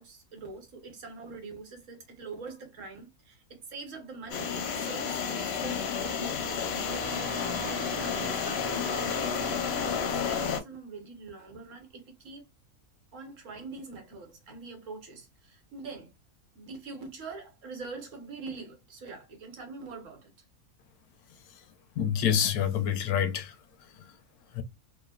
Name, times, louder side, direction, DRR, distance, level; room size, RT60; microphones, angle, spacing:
voice 1, 0.0-6.6 7.6-12.5 13.1-16.1 16.5-20.3, right 4 dB, 60° right, 1.1 m, -44 dB
sound 1, 4.3-10.6, left 6 dB, 65° left, 0.6 m, -31 dB
Wind instrument woodwind instrument, 6.7-10.6, right 6 dB, 90° right, 1.1 m, -43 dB
voice 2, 22.0-23.5 24.5-24.6, left 8 dB, 85° left, 1.1 m, -27 dB
3.1 x 2.1 x 2.2 m
omnidirectional pair, 1.6 m